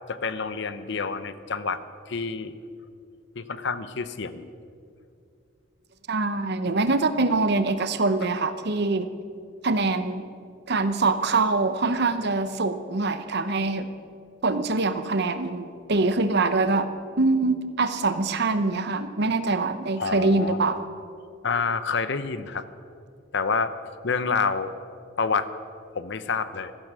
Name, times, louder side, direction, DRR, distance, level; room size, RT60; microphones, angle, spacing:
voice 1, 0.1-1.8 2.1-2.5 3.4-4.5 20.0-20.6 21.4-22.6 23.3-23.7 24.0-24.7 25.2-25.5 25.9-26.7, left 5 dB, 65° left, 13 dB, 0.8 m, -28 dB
voice 2, 6.1-9.1 9.6-10.3 10.7-13.9 14.4-16.9 17.2-20.8, right 3 dB, 60° right, 11 dB, 0.9 m, -24 dB
16.0 x 14.0 x 6.3 m, 2.4 s
head